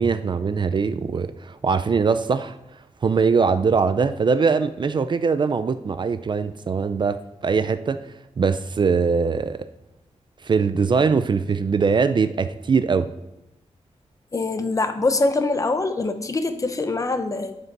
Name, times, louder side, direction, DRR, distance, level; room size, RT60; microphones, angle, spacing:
voice 1, 0.0-2.6 3.0-9.7 10.4-13.1, right 5 dB, 40° right, 0.4 m, -22 dB
voice 2, 14.3-17.5, left 3 dB, 30° left, 0.8 m, -23 dB
11.0 x 7.7 x 6.0 m
wide cardioid pair, 180°, 12 cm